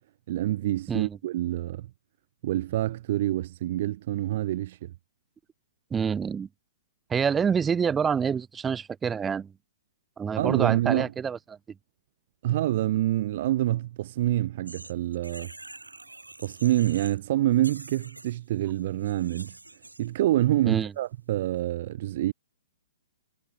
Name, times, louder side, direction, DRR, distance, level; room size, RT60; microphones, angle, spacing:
voice 1, 0.3-1.9 2.4-4.9 10.4-11.1 12.4-15.5 16.4-19.6 20.0-22.3, right 14 dB, 45° right, 1.4 m, -26 dB
voice 2, 5.9-6.5 7.1-9.5 10.2-11.4 20.7-20.9, right 6 dB, 15° right, 2.3 m, -27 dB
sound 1, 14.7-17.3 17.5-20.1, right 2 dB, 85° right, 7.5 m, -46 dB
figure-of-eight pair, 120°, 0 cm